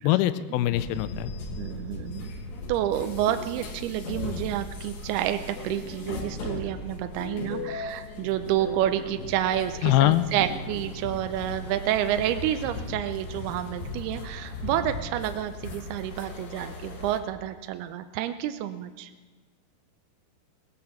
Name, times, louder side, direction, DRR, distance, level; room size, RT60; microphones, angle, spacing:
voice 1, 0.0-1.3 9.8-10.3, left 15 dB, 85° left, 12 dB, 2.1 m, -22 dB
sound 1, 0.7-17.2, left 3 dB, 50° left, 2.4 m, -37 dB
voice 2, 1.6-2.3 2.7-19.1, right 12 dB, 80° right, 9 dB, 2.4 m, -29 dB
18.5 x 9.6 x 7.1 m, 1.3 s
omnidirectional pair, 4.9 m